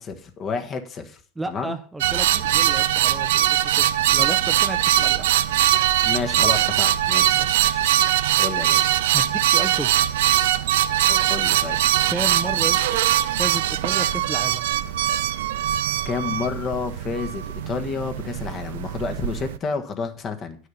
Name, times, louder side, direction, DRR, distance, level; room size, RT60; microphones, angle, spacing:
voice 1, 0.0-1.2 1.5-1.7 6.0-7.9 8.4-8.9 11.1-11.8 16.0-20.6, left 5 dB, 35° left, 6 dB, 1.4 m, -30 dB
voice 2, 1.4-5.3 7.3-7.7 9.1-9.9 12.1-13.0 13.4-14.6, right 2 dB, 10° right, 8 dB, 0.7 m, -33 dB
sound 1, 2.0-19.6, right 12 dB, 80° right, 0.4 m, -21 dB
9.4 x 6.4 x 5.6 m, 0.42 s
hypercardioid pair, 105°, 0 cm